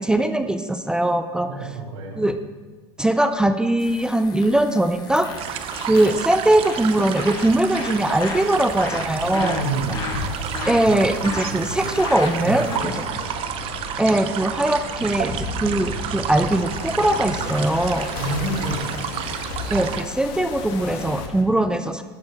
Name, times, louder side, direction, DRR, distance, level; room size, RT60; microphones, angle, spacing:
voice 1, 0.0-1.5 2.2-2.4 3.0-5.6 5.8-9.6 10.7-12.9 14.0-18.1 19.7-22.0, right 1 dB, 5° right, 9 dB, 0.3 m, -21 dB
voice 2, 1.5-2.2 9.3-10.2 10.8-10.9 11.5-11.9 12.4-13.3 18.2-18.9, right 2 dB, 70° right, -1 dB, 2.7 m, -29 dB
sound 1, 3.8-12.8, left 4 dB, 25° left, 1.2 m, -35 dB
sound 2, 5.4-20.0, right 9 dB, 35° right, 0.7 m, -31 dB
sound 3, 7.0-21.4, left 4 dB, 55° left, 1.4 m, -35 dB
11.5 x 4.6 x 6.9 m, 1.3 s
supercardioid pair, 135°, 16 cm